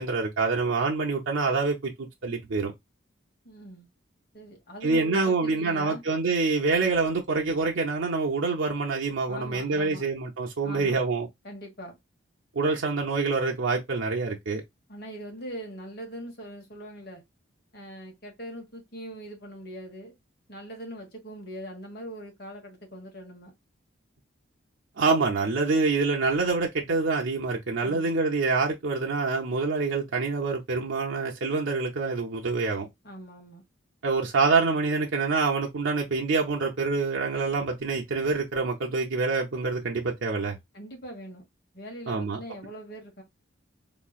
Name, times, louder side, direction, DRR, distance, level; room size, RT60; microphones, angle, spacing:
voice 1, 0.0-2.7 4.8-11.3 12.5-14.6 25.0-32.9 34.0-40.6 42.1-42.4, right 4 dB, 80° right, 0.7 m, -26 dB
voice 2, 3.4-3.9 4.3-6.0 9.3-10.0 10.6-11.0 11.4-12.0 14.9-17.2 17.7-20.1 20.5-23.5 27.8-28.1 33.0-33.6 40.7-41.5 41.7-43.2, right 1 dB, 50° left, 1.5 m, -41 dB
3.7 x 3.0 x 2.3 m
head